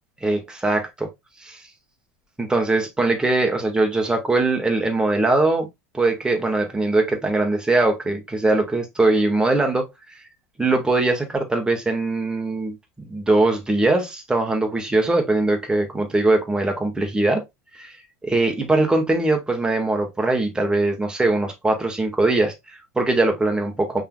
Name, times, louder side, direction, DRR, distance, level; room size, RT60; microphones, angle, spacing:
voice 1, 0.2-1.1 1.4-1.6 2.4-5.7 5.9-9.9 10.6-12.7 13.0-17.4 17.7-18.0 18.2-24.0, right 2 dB, 10° right, 1.6 m, -21 dB
5.5 x 3.8 x 2.3 m
hypercardioid pair, 80°, 8 cm